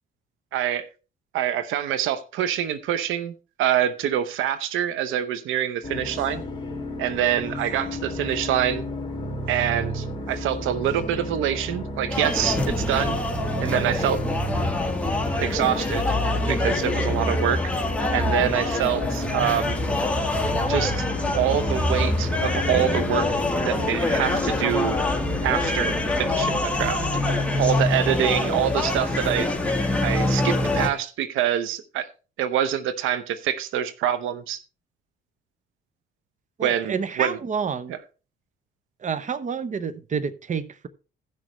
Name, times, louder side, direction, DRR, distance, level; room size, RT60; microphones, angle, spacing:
voice 1, 0.5-0.9 1.3-6.4 7.0-8.8 9.5-13.2 13.6-14.2 15.4-16.1 16.5-17.6 18.1-19.8 20.7-21.0 21.3-23.3 23.7-25.0 25.4-27.0 27.6-29.5 30.0-32.1 32.4-34.6 36.6-37.4, right 10 dB, 90° right, 0.8 m, -25 dB
sound 1, 5.8-25.5, equal, 20° left, 3.1 m, -32 dB
sound 2, 12.1-30.9, left 2 dB, 5° left, 1.7 m, -25 dB
voice 2, 36.6-38.0 39.0-40.9, right 6 dB, 40° right, 0.8 m, -29 dB
16.0 x 6.3 x 3.1 m
cardioid pair, 90°, 20 cm